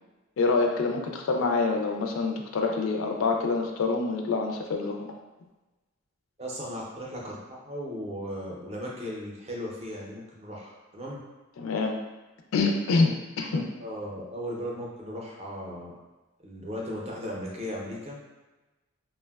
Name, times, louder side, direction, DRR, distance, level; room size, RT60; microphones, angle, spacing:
voice 1, 0.4-5.2 11.6-12.0 12.5-13.6, left 3 dB, 70° left, 3 dB, 0.4 m, -26 dB
voice 2, 6.4-11.2 13.5-15.9 16.4-18.2, equal, 30° right, -3 dB, 0.5 m, -37 dB
3.3 x 2.1 x 2.2 m, 1.1 s
head